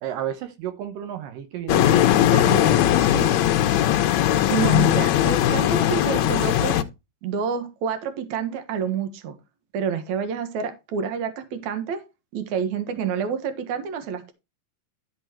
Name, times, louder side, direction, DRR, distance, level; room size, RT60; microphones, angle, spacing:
voice 1, 0.0-3.4, right 11 dB, 80° right, 2.5 m, -32 dB
sound 1, 1.7-6.8, left 12 dB, 75° left, 1.7 m, -19 dB
voice 2, 4.5-6.8 7.2-9.4 9.7-12.0 12.3-14.3, right 7 dB, 60° right, 2.5 m, -28 dB
13.0 x 4.5 x 4.5 m
omnidirectional pair, 4.0 m